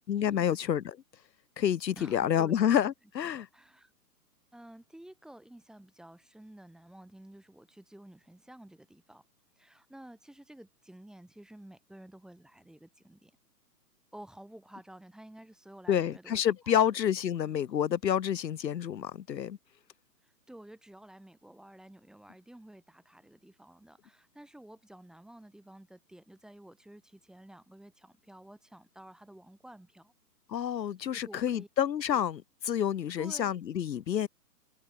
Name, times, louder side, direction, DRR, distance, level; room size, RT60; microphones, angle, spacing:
voice 1, 0.1-1.0 1.6-3.5 15.9-19.6 30.5-34.3, left 9 dB, 80° left, 0.9 m, -29 dB
voice 2, 2.0-2.6 3.4-3.9 4.5-9.2 9.6-13.3 14.1-16.4 20.2-30.1 31.1-31.7 32.1-32.2 33.2-33.6, right 1 dB, ahead, 1.6 m, -52 dB
hypercardioid pair, 145°, 50 cm